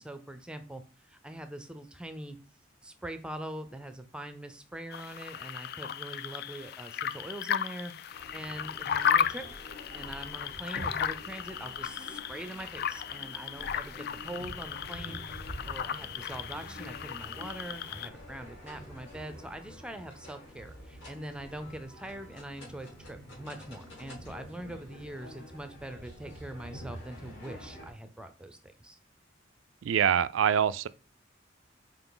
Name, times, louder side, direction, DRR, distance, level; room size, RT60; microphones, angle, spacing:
voice 1, 0.0-2.4 2.8-9.4 9.9-15.2 15.6-29.0, right 1 dB, 5° right, 0.5 m, -43 dB
sound 1, 4.9-18.1, left 8 dB, 55° left, 0.3 m, -35 dB
sound 2, 8.1-27.9, equal, 75° left, 3.0 m, -47 dB
sound 3, 9.4-20.5, left 1 dB, 30° left, 1.1 m, -57 dB
voice 2, 29.8-30.9, right 8 dB, 85° right, 0.3 m, -25 dB
5.8 x 4.4 x 3.9 m
head